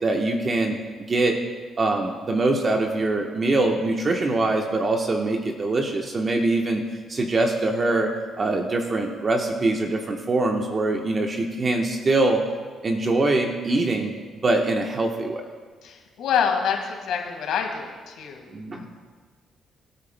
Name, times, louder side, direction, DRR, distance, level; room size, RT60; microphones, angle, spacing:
voice 1, 0.0-1.4 1.8-6.8 7.1-12.4 12.8-14.1 14.4-15.5 18.5-18.8, right 2 dB, 35° right, 2 dB, 1.1 m, -23 dB
voice 2, 15.8-19.0, left 7 dB, 85° left, 2 dB, 1.7 m, -27 dB
22.0 x 8.5 x 2.2 m, 1.5 s
cardioid pair, 90°, 0 cm